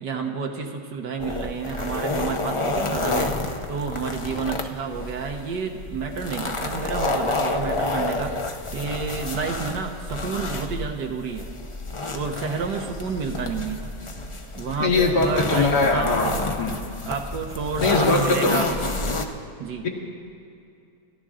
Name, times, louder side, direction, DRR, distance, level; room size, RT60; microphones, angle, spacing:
voice 1, 0.0-3.4 3.7-11.5 12.1-13.8 14.6-16.5 17.0-18.7 19.6-19.9, right 5 dB, 80° right, 2 dB, 1.7 m, -30 dB
sound 1, 1.2-19.3, left 2 dB, 40° left, 0.4 m, -29 dB
voice 2, 14.8-16.8 17.8-18.6 19.8-19.9, left 3 dB, 70° left, 0 dB, 2.4 m, -21 dB
28.5 x 13.0 x 3.7 m, 2.5 s
omnidirectional pair, 1.8 m